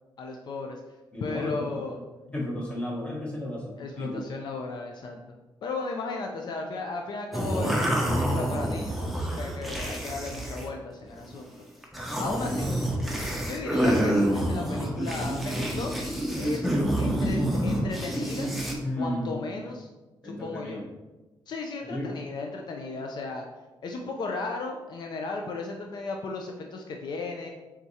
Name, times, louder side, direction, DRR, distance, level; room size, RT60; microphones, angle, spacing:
voice 1, 0.2-0.8 1.2-2.0 3.8-5.4 5.6-11.5 12.2-12.7 13.5-16.0 16.3-18.5 19.0-19.9 20.2-20.8 21.5-23.4 23.8-27.5, left 3 dB, 60° left, 2 dB, 0.4 m, -35 dB
voice 2, 1.1-1.7 2.3-4.2 18.8-19.6 20.2-20.8 21.8-22.1, left 1 dB, 15° left, -3 dB, 1.1 m, -33 dB
sound 1, 7.3-10.7 11.0-11.4 11.8-18.8, equal, ahead, 0.6 m, -27 dB
4.4 x 3.6 x 2.7 m, 1.1 s
wide cardioid pair, 135°, 8 cm